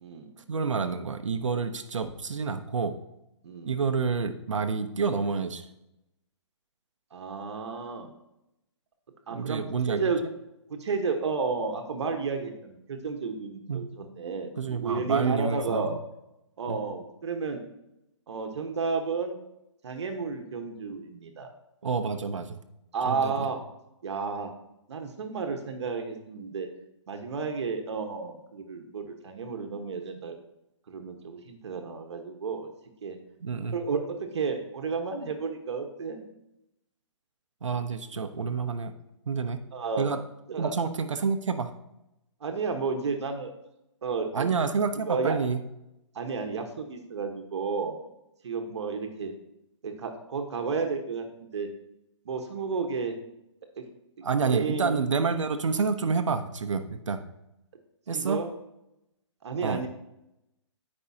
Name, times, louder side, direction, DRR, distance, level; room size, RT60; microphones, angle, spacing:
voice 1, 0.5-2.9 3.7-5.7 9.3-10.0 13.7-13.8 14.6-16.0 16.7-16.8 21.8-22.6 23.0-23.5 33.4-33.8 37.6-38.9 39.3-39.6 40.0-40.2 40.6-41.7 44.3-45.6 54.2-57.2 58.1-58.4 59.6-59.8, right 5 dB, 85° right, 8 dB, 0.8 m, -28 dB
voice 2, 7.1-8.1 9.3-10.2 10.7-15.9 16.6-17.6 18.3-19.4 19.8-21.5 22.9-23.6 24.0-24.5 24.9-26.7 27.1-30.3 30.9-32.7 33.0-33.2 33.7-36.3 39.7-40.1 40.5-40.7 42.4-43.5 44.0-44.5 45.1-45.3 46.1-48.0 48.4-49.3 49.8-51.3 51.5-51.7 52.2-53.1 53.8-53.9 54.5-54.9 58.1-58.5 59.4-59.9, right 5 dB, 65° right, 4 dB, 1.2 m, -32 dB
14.5 x 5.4 x 2.8 m, 0.87 s
hypercardioid pair, 145°, 16 cm